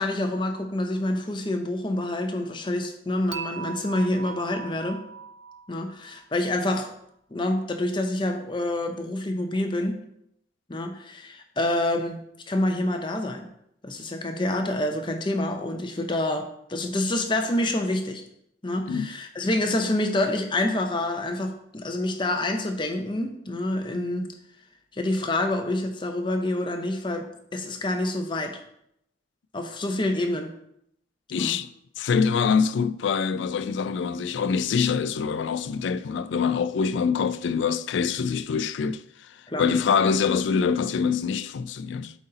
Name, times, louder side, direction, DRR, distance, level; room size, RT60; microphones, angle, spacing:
voice 1, 0.0-5.0 5.7-6.9 7.3-10.0 10.7-12.2 12.5-13.5 13.8-18.2 18.6-24.3 24.9-28.6 29.5-30.5 31.3-31.5 39.5-39.7, left 1 dB, 25° left, 0.6 m, -27 dB
Dishes pots and pans / Chink clink, 3.3-6.5, right 7 dB, 70° right, 0.5 m, -39 dB
voice 2, 31.3-31.7 32.0-39.0 39.3-42.1, left 6 dB, 70° left, 0.3 m, -25 dB
8.0 x 4.1 x 3.9 m
head